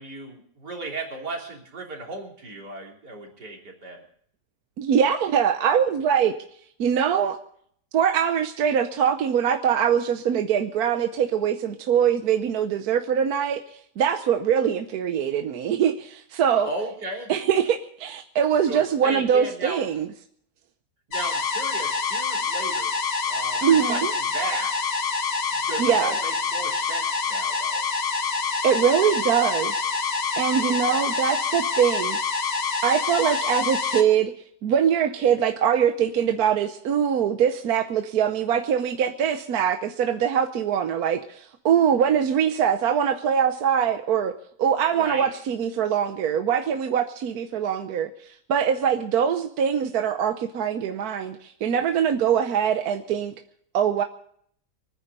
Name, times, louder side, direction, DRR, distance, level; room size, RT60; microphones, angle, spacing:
voice 1, 0.0-4.0 16.6-17.3 18.7-19.9 21.1-22.9 23.3-24.8 25.5-27.8 30.6-31.1 45.0-45.3, right 2 dB, 85° right, 0 dB, 3.8 m, -35 dB
voice 2, 4.8-6.3 6.8-7.4 7.9-13.6 14.0-16.7 17.3-20.1 23.6-24.1 25.8-26.2 28.6-29.8 30.4-32.2 32.8-34.3 34.6-41.4 41.6-44.3 44.6-48.1 48.5-53.3 53.7-54.0, right 8 dB, 70° right, 7 dB, 1.3 m, -23 dB
sound 1, 21.1-34.0, left 5 dB, 45° left, 1.2 m, -26 dB
24.0 x 9.8 x 5.4 m, 0.63 s
omnidirectional pair, 1.7 m